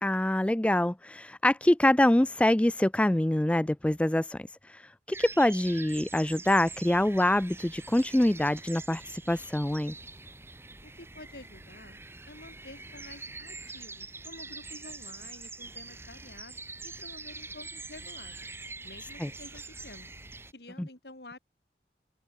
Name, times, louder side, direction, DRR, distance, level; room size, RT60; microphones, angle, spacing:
voice 1, 0.0-4.8 5.1-9.9 19.2-19.3 20.8-20.9, left 1 dB, 5° left, 0.3 m, -25 dB
sound 1, 5.1-20.5, right 3 dB, 15° right, 2.1 m, -44 dB
voice 2, 10.8-12.0 12.3-18.4 18.8-20.1 20.5-21.4, left 2 dB, 70° left, 4.7 m, -50 dB
open air
head